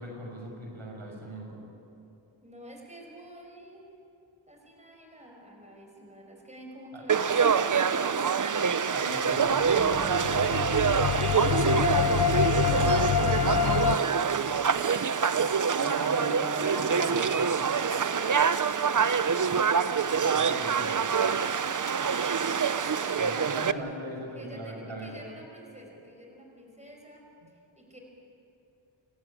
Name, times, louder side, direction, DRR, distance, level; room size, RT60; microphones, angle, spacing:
voice 1, 0.0-1.5 6.9-7.0 8.9-10.3 15.8-17.4 20.2-21.0 21.9-22.0 23.2-25.1, right 1 dB, 80° right, 0 dB, 6.3 m, -39 dB
voice 2, 2.4-3.9 4.5-8.6 15.6-17.1 22.0-23.9 24.3-27.2 27.8-28.0, equal, 15° right, 1 dB, 5.3 m, -48 dB
Conversation / Crowd, 7.1-23.7, right 6 dB, 40° right, 0.7 m, -25 dB
sound 1, 9.6-14.0, left 8 dB, 55° left, 0.7 m, -26 dB
27.5 x 14.5 x 10.0 m, 2.8 s
wide cardioid pair, 80°, 47 cm